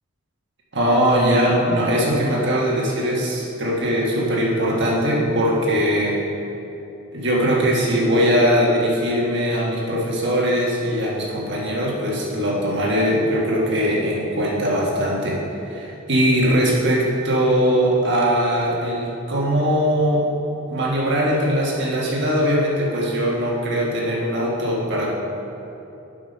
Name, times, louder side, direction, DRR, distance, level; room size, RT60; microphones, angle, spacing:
voice 1, 0.7-6.2 7.1-15.4 15.7-20.3 20.7-25.1, equal, 60° right, -3 dB, 1.5 m, -20 dB
7.8 x 5.2 x 5.3 m, 2.9 s
head